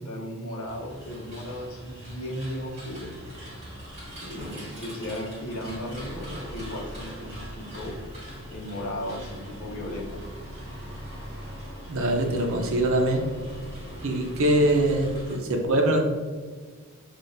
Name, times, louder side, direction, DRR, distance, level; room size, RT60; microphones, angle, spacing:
voice 1, 0.0-3.2 4.2-8.0 8.5-10.3, left 1 dB, 75° left, -1 dB, 0.8 m, -35 dB
sound 1, 0.6-15.4, equal, 30° right, 1.5 m, -40 dB
voice 2, 11.9-13.3 14.0-16.0, right 1 dB, 65° right, 3 dB, 0.6 m, -23 dB
5.8 x 2.4 x 2.6 m, 1.5 s
head